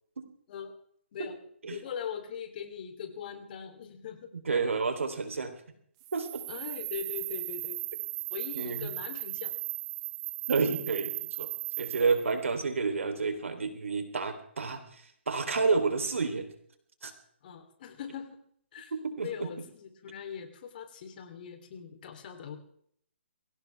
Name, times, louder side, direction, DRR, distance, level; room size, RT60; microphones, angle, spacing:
voice 1, 1.6-4.3 6.5-7.8 8.3-9.5 10.8-11.0 17.4-18.4 18.7-18.9 19.2-22.6, left 7 dB, 45° left, 6 dB, 3.2 m, -41 dB
voice 2, 4.5-5.5 6.1-6.4 8.5-8.9 10.5-11.5 11.8-14.8 15.3-16.5 17.0-17.1 19.0-19.5, right 4 dB, 80° right, 7 dB, 3.3 m, -29 dB
sound 1, 6.0-12.3, right 19 dB, 25° right, 1.1 m, -37 dB
22.5 x 17.0 x 3.4 m, 0.64 s
hypercardioid pair, 145°, 7 cm